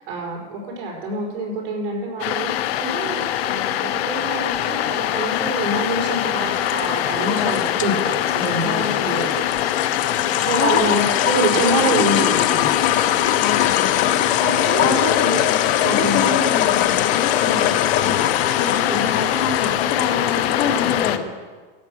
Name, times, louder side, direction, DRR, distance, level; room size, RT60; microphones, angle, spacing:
voice 1, 0.0-9.8 10.3-12.7 14.4-15.5 15.8-16.3 18.0-18.1 18.9-19.0, right 2 dB, 70° right, -2 dB, 4.8 m, -26 dB
sound 1, 2.2-21.2, left 11 dB, 90° left, 0.9 m, -23 dB
sound 2, 6.5-21.1, left 12 dB, 25° left, 0.4 m, -23 dB
voice 2, 7.3-7.7 8.6-9.2 10.6-11.0 13.4-14.1 14.8-15.4 15.8-18.3 18.6-21.2, left 6 dB, 50° left, 1 dB, 2.3 m, -26 dB
14.5 x 8.5 x 6.3 m, 1.4 s
supercardioid pair, 165°, 30 cm